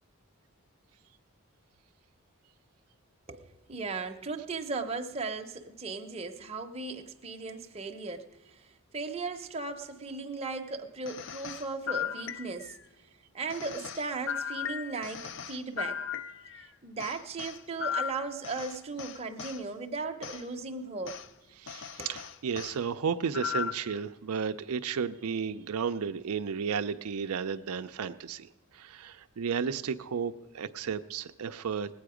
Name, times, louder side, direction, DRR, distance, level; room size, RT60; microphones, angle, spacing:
voice 1, 3.3-8.6 8.9-12.8 13.3-16.0 16.5-21.2 22.0-22.1, right 3 dB, 30° right, 4 dB, 0.7 m, -37 dB
sound 1, 11.1-12.8 13.5-16.7 17.0-19.6 20.2-20.4 21.1-21.3 21.7-22.8 23.3-23.9, left 8 dB, 55° left, 0.4 m, -37 dB
voice 2, 21.6-32.0, right 6 dB, 85° right, 9 dB, 0.5 m, -33 dB
19.0 x 8.5 x 4.9 m, 1.1 s
head